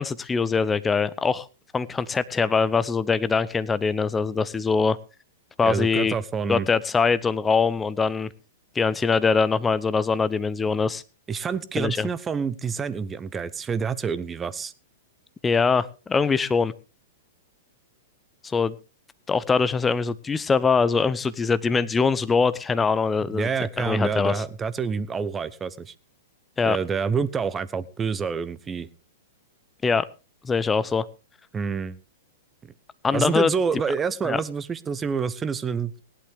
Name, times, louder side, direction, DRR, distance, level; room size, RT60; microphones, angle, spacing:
voice 1, 0.0-1.5 1.7-5.0 5.6-6.1 6.5-8.3 8.7-11.0 11.8-12.1 15.4-16.7 18.4-18.7 19.3-23.5 23.8-24.4 26.6-26.8 29.8-30.1 30.4-31.1 33.0-33.5 34.2-34.4, left 5 dB, 15° left, 16 dB, 0.8 m, -23 dB
voice 2, 5.6-6.7 11.3-14.7 23.3-25.9 26.7-28.9 31.5-32.0 33.1-36.0, right 6 dB, 20° right, 16 dB, 0.8 m, -27 dB
17.5 x 11.5 x 3.4 m, 0.32 s
figure-of-eight pair, 105°, 0 cm